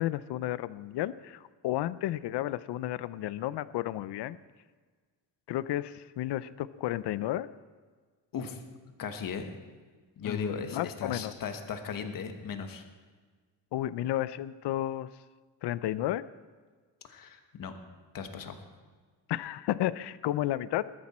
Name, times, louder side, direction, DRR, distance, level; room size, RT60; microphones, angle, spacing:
voice 1, 0.0-4.4 5.5-7.5 10.2-11.3 13.7-15.1 15.6-16.3 19.3-20.9, left 14 dB, 65° left, 17 dB, 0.6 m, -32 dB
voice 2, 9.0-9.5 10.2-12.8 17.0-17.7 18.1-18.6, left 6 dB, 45° left, 6 dB, 1.4 m, -37 dB
20.0 x 13.0 x 4.3 m, 1.5 s
cardioid pair, 175°, 45 cm